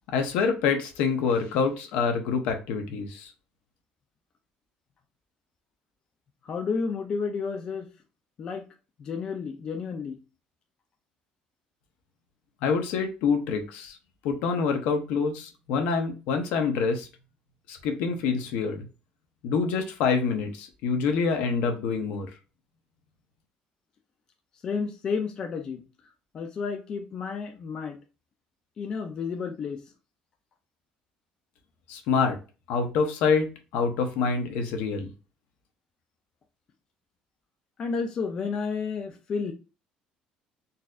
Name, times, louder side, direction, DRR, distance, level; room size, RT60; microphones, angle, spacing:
voice 1, 0.1-3.3 12.6-14.0 14.2-17.1 17.7-18.9 19.4-22.3 31.9-32.4 32.7-35.1, left 5 dB, 75° left, 0.8 m, -26 dB
voice 2, 6.4-7.9 8.4-8.6 9.0-10.2 24.6-25.8 26.3-28.0 28.8-29.8 37.8-39.5, left 5 dB, 30° left, 0.4 m, -31 dB
4.0 x 2.6 x 2.3 m
cardioid pair, 180°, 3 cm